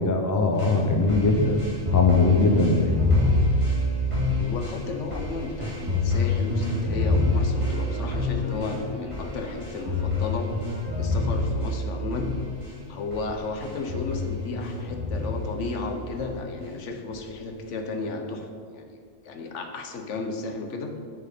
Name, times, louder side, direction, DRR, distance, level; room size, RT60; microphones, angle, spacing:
voice 1, 0.0-1.7 1.9-2.9, left 2 dB, 20° left, 3 dB, 0.6 m, -21 dB
sound 1, 0.5-12.7 13.1-13.3 13.6-15.7 16.1-16.7 17.1-17.2, left 2 dB, 25° right, 2.2 m, -26 dB
voice 2, 4.4-10.5 11.0-12.3 12.9-18.9 19.2-21.0, left 3 dB, 75° left, 5 dB, 1.2 m, -33 dB
9.1 x 6.7 x 4.3 m, 2.1 s
omnidirectional pair, 1.3 m